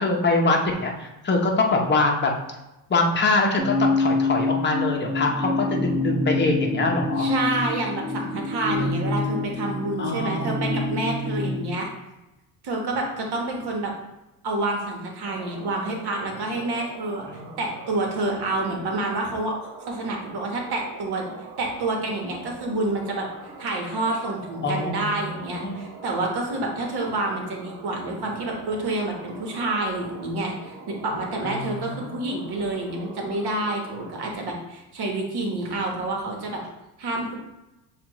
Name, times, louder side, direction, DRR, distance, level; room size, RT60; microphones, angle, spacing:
voice 1, 0.0-2.3 2.9-7.3 10.0-10.6 11.2-11.7 17.3-17.5 24.6-25.8 31.4-32.0, left 3 dB, 20° left, 1 dB, 0.8 m, -24 dB
sound 1, 3.6-11.7, left 2 dB, 30° right, 1.4 m, -26 dB
voice 2, 7.2-11.9 12.6-13.9 14.4-17.2 17.6-19.5 19.9-21.3 21.6-23.3 23.6-36.6 37.0-37.4, right 2 dB, 50° right, 1 dB, 1.3 m, -28 dB
sound 2, 15.2-34.3, right 3 dB, 80° right, 1.1 m, -43 dB
6.8 x 2.5 x 3.0 m, 0.98 s
cardioid pair, 100°, 48 cm